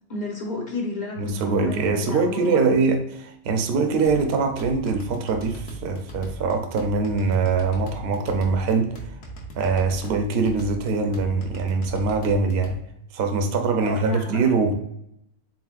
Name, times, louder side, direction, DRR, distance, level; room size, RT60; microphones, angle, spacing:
voice 1, 0.1-2.7 13.8-14.4, left 2 dB, 40° left, 0 dB, 0.8 m, -31 dB
voice 2, 1.2-8.9 9.6-12.8 13.1-14.7, right 4 dB, 60° right, 6 dB, 0.7 m, -23 dB
sound 1, 4.0-12.8, right 1 dB, 60° left, 1.1 m, -39 dB
4.3 x 3.8 x 2.4 m, 0.77 s
omnidirectional pair, 1.5 m